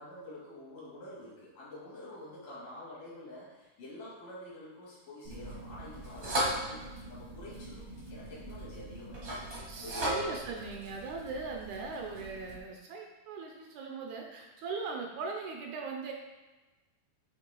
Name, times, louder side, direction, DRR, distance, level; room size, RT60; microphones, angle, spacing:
voice 1, 0.0-6.8 7.1-10.4, left 1 dB, 75° left, -7 dB, 3.8 m, -48 dB
sound 1, 5.2-12.6, right 1 dB, 45° right, 0.8 m, -38 dB
voice 2, 9.7-16.1, right 4 dB, 75° right, 1 dB, 1.8 m, -39 dB
9.3 x 3.3 x 3.7 m, 1.1 s
omnidirectional pair, 3.7 m